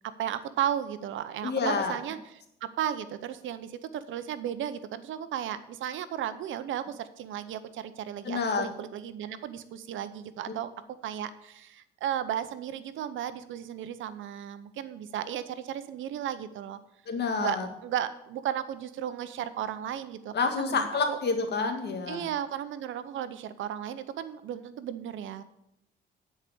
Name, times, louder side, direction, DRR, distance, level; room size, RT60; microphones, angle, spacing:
voice 1, 0.2-2.2 2.6-10.7 11.0-16.8 17.3-21.2 22.1-25.4, right 10 dB, 75° right, 13 dB, 0.8 m, -35 dB
voice 2, 1.4-2.0 8.2-8.7 17.1-17.7 20.3-22.3, left 4 dB, 60° left, 5 dB, 1.8 m, -28 dB
9.7 x 4.9 x 8.0 m, 0.81 s
cardioid pair, 90°, 20 cm